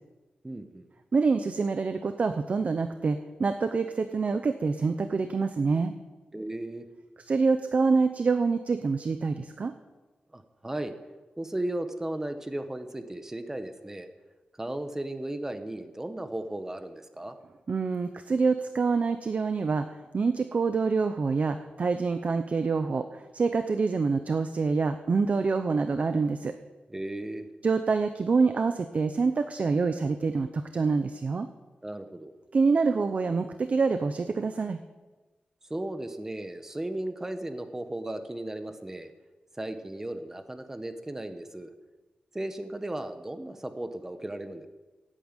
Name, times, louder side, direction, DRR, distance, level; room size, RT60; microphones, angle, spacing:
voice 1, 0.4-0.9 6.3-6.8 10.3-10.9 11.4-14.1 14.6-17.4 26.9-27.5 31.8-32.3 35.7-39.1 39.6-41.7 42.3-44.7, right 1 dB, 15° right, 8 dB, 1.3 m, -35 dB
voice 2, 1.1-5.9 7.3-9.7 17.7-19.9 20.1-26.5 27.6-31.5 32.5-34.8, right 4 dB, 45° right, 9 dB, 0.8 m, -26 dB
16.5 x 9.1 x 9.1 m, 1.2 s
wide cardioid pair, 160°, 3 cm